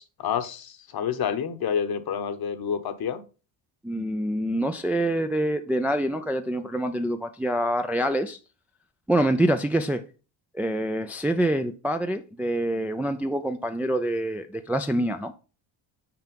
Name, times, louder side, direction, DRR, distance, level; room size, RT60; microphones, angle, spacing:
voice 1, 0.0-3.2, left 7 dB, 50° left, 10 dB, 1.0 m, -29 dB
voice 2, 3.8-8.4 9.1-10.0 10.5-15.3, right 1 dB, 5° right, 6 dB, 0.4 m, -26 dB
6.0 x 4.4 x 5.2 m, 0.35 s
cardioid pair, 100°, 49 cm